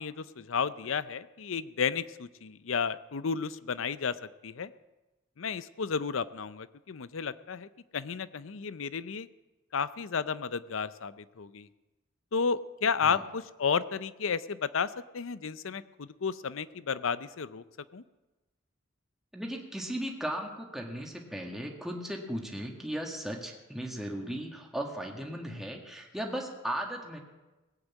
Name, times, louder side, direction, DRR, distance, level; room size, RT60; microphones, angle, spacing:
voice 1, 0.0-4.7 5.4-9.3 9.7-11.7 12.3-17.6 17.9-18.0, left 6 dB, 70° left, 16 dB, 0.6 m, -32 dB
voice 2, 19.3-27.2, equal, ahead, 1 dB, 1.7 m, -36 dB
18.0 x 8.1 x 8.3 m, 1.1 s
head